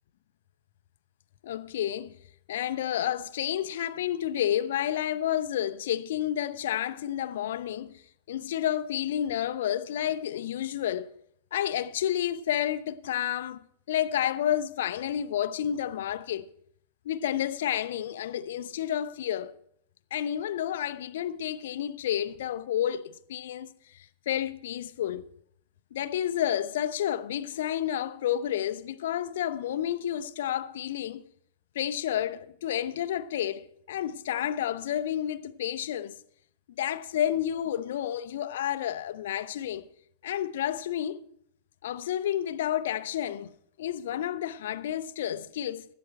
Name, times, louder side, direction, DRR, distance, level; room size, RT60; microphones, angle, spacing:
voice 1, 1.4-2.1 2.5-8.0 8.3-11.1 11.5-13.6 13.9-16.5 17.1-19.5 20.1-25.2 25.9-31.2 31.7-36.2 36.8-39.9 40.2-41.2 41.8-43.5 43.8-45.8, left 11 dB, 60° left, 0.5 m, -30 dB
12.5 x 12.5 x 4.4 m
figure-of-eight pair, 90°, 0 cm